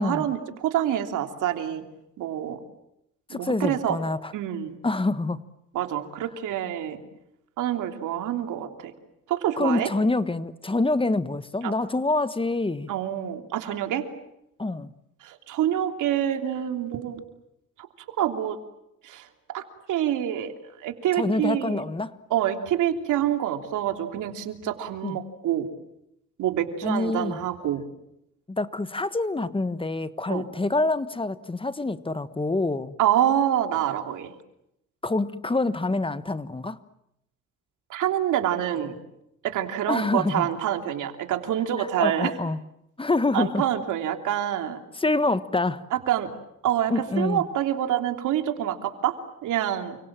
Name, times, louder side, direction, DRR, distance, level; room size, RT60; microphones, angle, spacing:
voice 1, 0.0-1.8 2.2-2.6 3.3-4.0 4.3-4.8 5.7-7.0 7.6-8.9 9.3-9.9 11.6-11.7 12.9-14.1 15.2-17.2 17.8-18.6 19.0-19.3 19.5-20.5 20.8-21.8 22.3-25.7 26.4-27.8 30.3-30.5 33.0-34.3 37.9-38.9 39.4-42.3 43.3-44.8 45.9-46.3 46.6-49.2 49.4-50.0, right 11 dB, 85° right, 6 dB, 3.2 m, -26 dB
voice 2, 3.3-4.3 4.8-5.4 9.6-12.9 14.6-14.9 21.2-22.1 25.0-25.2 26.8-27.4 28.5-32.9 35.0-36.8 39.9-40.5 41.8-42.6 43.0-43.6 45.0-45.8 46.9-47.4, left 2 dB, 15° left, 14 dB, 1.4 m, -26 dB
29.5 x 26.0 x 7.6 m, 0.81 s
cardioid pair, 90°, 30 cm